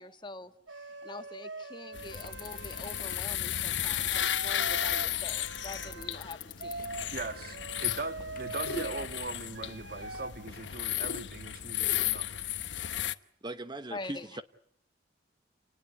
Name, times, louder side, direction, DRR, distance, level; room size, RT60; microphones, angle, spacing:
voice 1, 0.0-6.9 13.9-14.3, left 2 dB, 25° left, 1.8 m, -45 dB
sound 1, 0.7-3.2 3.7-6.2 6.6-9.1 9.6-10.3, right 2 dB, 80° right, 2.4 m, -43 dB
sound 2, 1.9-13.1, left 11 dB, 75° left, 1.0 m, -34 dB
Bicycle, 2.1-9.4, left 13 dB, 50° left, 1.6 m, -48 dB
voice 2, 7.1-12.4, right 3 dB, 55° right, 1.9 m, -40 dB
voice 3, 13.4-14.4, right 1 dB, 25° right, 1.0 m, -39 dB
29.5 x 19.5 x 8.2 m
head